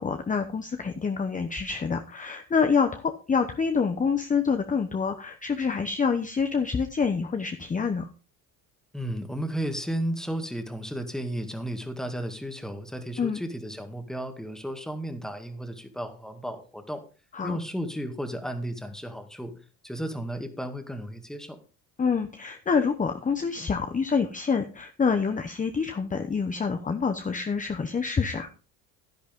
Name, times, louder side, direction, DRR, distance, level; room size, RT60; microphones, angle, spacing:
voice 1, 0.0-8.1 13.2-13.4 17.3-17.6 22.0-28.5, left 5 dB, 20° left, 7 dB, 0.9 m, -27 dB
voice 2, 8.9-17.0 17.4-19.5 19.8-21.6, equal, ahead, 6 dB, 1.9 m, -33 dB
10.5 x 10.0 x 3.7 m, 0.35 s
supercardioid pair, 90°, 37 cm